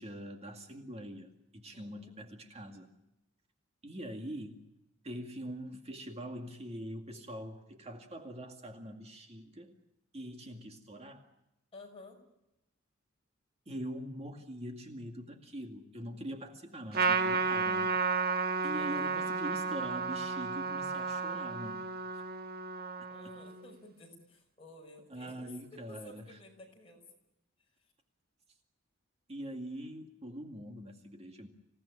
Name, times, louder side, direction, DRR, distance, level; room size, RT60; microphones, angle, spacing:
voice 1, 0.0-2.9 3.8-4.6 5.0-9.8 10.1-11.2 13.7-18.0 18.6-21.8 25.1-26.2 29.3-31.5, equal, 30° right, 4 dB, 2.1 m, -43 dB
voice 2, 1.7-2.2 11.7-12.2 18.9-19.3 23.1-27.1 27.6-27.9, left 2 dB, 30° left, 1 dB, 6.1 m, -54 dB
Trumpet, 16.9-23.6, right 4 dB, 50° right, 1.5 m, -32 dB
26.5 x 17.5 x 10.0 m, 0.91 s
head